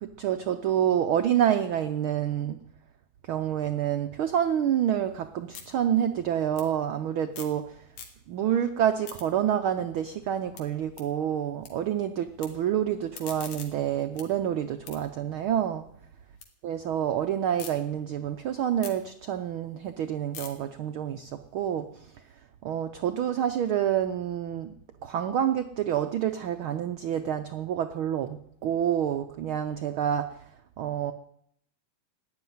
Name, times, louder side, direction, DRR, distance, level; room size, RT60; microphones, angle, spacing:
voice 1, 0.0-2.6 3.2-7.8 8.3-15.8 16.6-22.1 22.6-24.8 25.0-30.3 30.8-31.1, right 10 dB, 80° right, 8 dB, 1.1 m, -28 dB
sound 1, 4.7-7.6 7.9-8.5 8.8-11.7 12.0-12.5 12.9-16.5 16.9-17.7 18.2-22.3, left 7 dB, 80° left, 3.4 m, -47 dB
15.0 x 9.9 x 9.4 m, 0.72 s
omnidirectional pair, 3.3 m